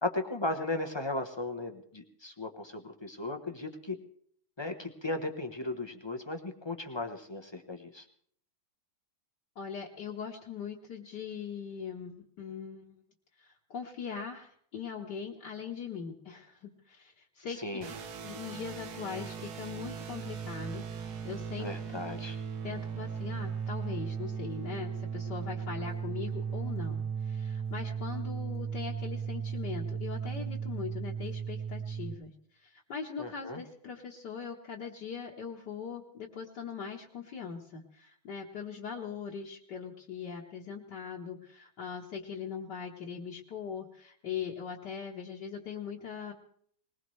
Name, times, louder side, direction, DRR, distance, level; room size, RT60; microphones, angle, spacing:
voice 1, 0.0-4.0 4.6-8.1 17.5-17.9 21.6-22.4 33.2-33.6, left 2 dB, 30° left, 5 dB, 0.5 m, -36 dB
voice 2, 9.6-13.0 13.4-17.8 18.2-22.0 22.6-32.3 32.6-46.3, left 6 dB, 60° left, -3 dB, 1.8 m, -41 dB
sound 1, 17.8-32.1, right 7 dB, 55° right, 1.4 m, -37 dB
20.5 x 20.0 x 3.2 m, 0.62 s
omnidirectional pair, 2.2 m